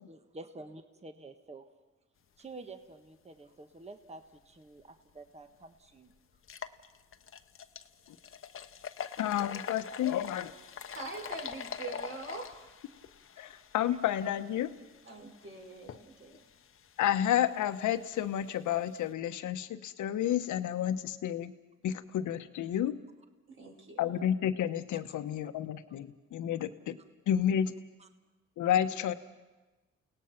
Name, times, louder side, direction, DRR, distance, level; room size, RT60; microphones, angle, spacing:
voice 1, 0.0-1.7 2.4-6.1 13.9-14.0 28.0-28.1, right 2 dB, 20° right, 7 dB, 1.4 m, -49 dB
sound 1, 5.1-5.2 5.6-5.7 6.3-19.1, left 7 dB, 45° left, 1.0 m, -45 dB
voice 2, 9.2-10.5 13.4-14.7 17.0-21.5 21.8-23.0 24.0-27.0 27.3-27.7 28.6-29.1, left 10 dB, 75° left, 10 dB, 1.2 m, -30 dB
voice 3, 10.9-12.7 15.1-16.4 23.5-24.2, right 3 dB, 45° right, 2 dB, 5.4 m, -44 dB
30.0 x 18.0 x 5.9 m, 1.2 s
cardioid pair, 90°, 30 cm